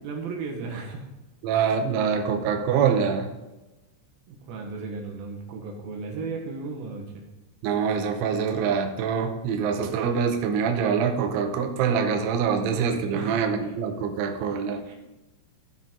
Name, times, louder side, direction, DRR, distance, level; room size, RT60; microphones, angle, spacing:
voice 1, 0.0-1.1 4.3-7.2 13.1-13.5 14.9-15.0, right 4 dB, 65° right, 1 dB, 2.6 m, -35 dB
voice 2, 1.4-3.3 7.6-14.8, right 6 dB, 80° right, 4 dB, 3.2 m, -25 dB
14.5 x 6.0 x 3.8 m, 1.0 s
omnidirectional pair, 5.6 m